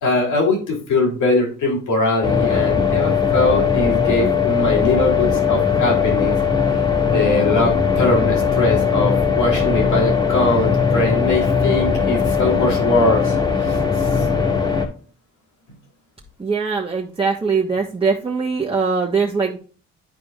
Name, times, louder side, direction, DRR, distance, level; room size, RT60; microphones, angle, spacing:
voice 1, 0.0-6.4 7.1-13.4 13.6-14.3, left 2 dB, 80° left, 0 dB, 3.1 m, -21 dB
sound 1, 2.2-14.9, left 6 dB, 15° left, 1.8 m, -19 dB
voice 2, 16.4-19.6, right 5 dB, 20° right, -4 dB, 1.2 m, -21 dB
10.5 x 4.7 x 2.4 m, 0.39 s
cardioid pair, 90°, 30 cm